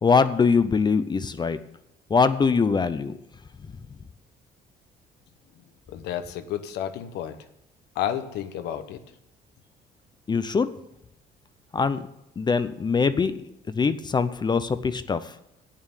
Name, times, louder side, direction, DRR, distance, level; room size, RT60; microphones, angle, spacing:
voice 1, 0.0-1.6 2.1-3.1 10.3-10.7 11.7-12.0 12.4-13.5 13.8-15.3, left 5 dB, 25° left, 12 dB, 0.6 m, -22 dB
voice 2, 5.9-7.4 8.0-9.0, left 10 dB, 85° left, 10 dB, 1.0 m, -31 dB
8.7 x 7.4 x 8.9 m, 0.82 s
cardioid pair, 110°, 17 cm